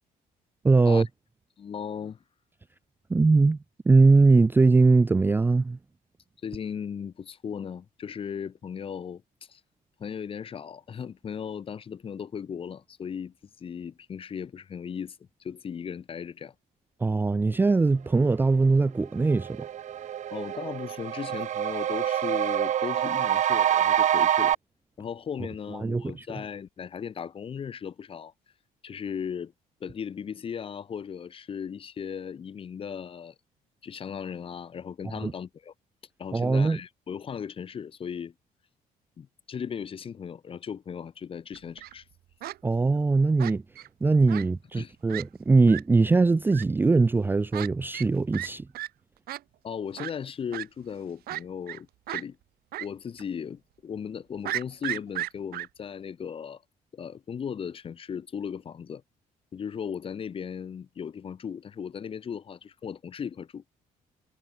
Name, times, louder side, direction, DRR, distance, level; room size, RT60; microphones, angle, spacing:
voice 1, 0.6-1.1 3.1-3.6 3.9-5.8 17.0-19.6 25.8-26.3 35.2-35.3 36.3-36.8 42.6-43.6 44.0-48.7, right 3 dB, 15° right, 0.5 m, -21 dB
voice 2, 1.6-2.2 6.4-9.2 9.5-9.6 10.0-16.5 20.3-24.6 25.0-28.3 28.8-29.5 29.8-33.3 33.8-35.7 36.2-38.3 39.2-42.0 44.4-44.5 44.8-44.9 49.6-52.4 52.8-56.6 56.9-59.0 59.5-63.6, left 7 dB, 35° left, 3.4 m, -37 dB
sound 1, 18.8-18.9 19.2-24.6, right 10 dB, 50° right, 1.6 m, -26 dB
Fowl, 41.5-41.9 42.4-42.6 43.4-43.9 44.3-44.4 44.8-44.9 45.1-45.2 45.7-45.8 46.5-46.6 47.5-47.7 47.9-48.1 48.3-48.5 48.7-48.9 49.3-49.4 50.0-50.1 50.5-50.7 51.3-51.8 52.1-52.2 52.7-52.9 53.2-53.3 54.4-55.7, right 15 dB, 80° right, 7.2 m, -34 dB
cardioid pair, 155°, 15 cm